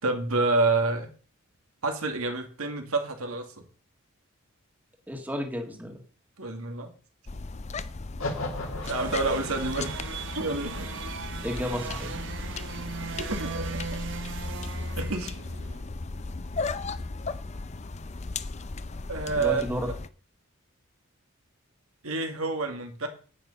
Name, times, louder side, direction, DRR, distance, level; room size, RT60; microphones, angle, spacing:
voice 1, 0.0-1.1 1.8-3.5 6.4-6.9 8.9-9.9 10.3-10.9 13.2-13.8 15.0-15.4 19.1-19.6 22.0-23.1, right 3 dB, 75° right, 4 dB, 2.2 m, -28 dB
voice 2, 5.1-6.0 11.4-12.1 19.3-19.9, equal, 10° right, 3 dB, 1.8 m, -32 dB
sound 1, 7.3-20.1, left 3 dB, 30° left, 0.5 m, -36 dB
sound 2, 8.2-14.4, left 1 dB, 65° left, 2.5 m, -40 dB
sound 3, 8.8-15.8, right 5 dB, 55° right, 1.3 m, -38 dB
9.9 x 9.3 x 5.6 m, 0.41 s
head